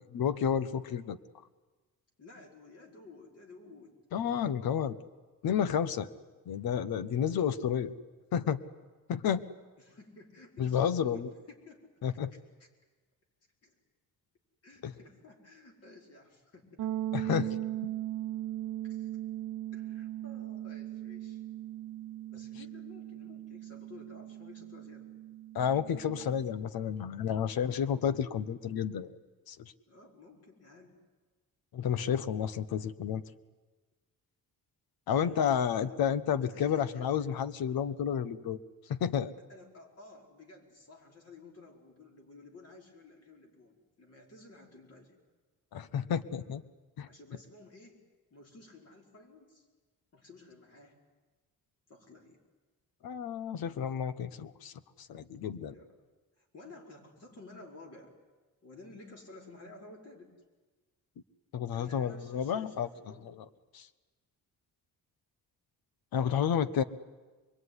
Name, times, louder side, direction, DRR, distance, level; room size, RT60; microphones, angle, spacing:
voice 1, 0.1-1.2 4.1-5.0 5.4-6.1 6.5-7.9 8.3-8.6 9.1-9.4 10.6-11.3 12.0-12.3 14.8-14.9 17.1-17.5 25.5-29.1 29.5-29.6 31.7-33.2 35.1-38.6 38.9-39.3 45.7-46.6 47.0-47.1 53.0-55.7 61.5-62.9 63.7-63.9 66.1-66.8, left 8 dB, 80° left, 13 dB, 1.2 m, -31 dB
voice 2, 2.2-3.9 9.8-11.2 11.5-12.2 12.6-12.7 13.6-13.7 14.6-16.9 18.8-19.1 19.7-21.4 22.3-25.1 27.5-28.6 29.9-31.0 35.1-36.1 36.4-37.4 39.5-45.2 47.1-48.0 48.3-49.7 50.1-51.0 51.9-52.4 55.7-56.0 56.4-58.1 58.6-60.3 61.7-63.3 66.2-66.7, left 2 dB, 45° left, 0 dB, 5.1 m, -53 dB
sound 1, 16.8-26.5, right 13 dB, 60° right, 1.0 m, -39 dB
25.0 x 22.0 x 9.8 m, 1.3 s
wide cardioid pair, 150°, 36 cm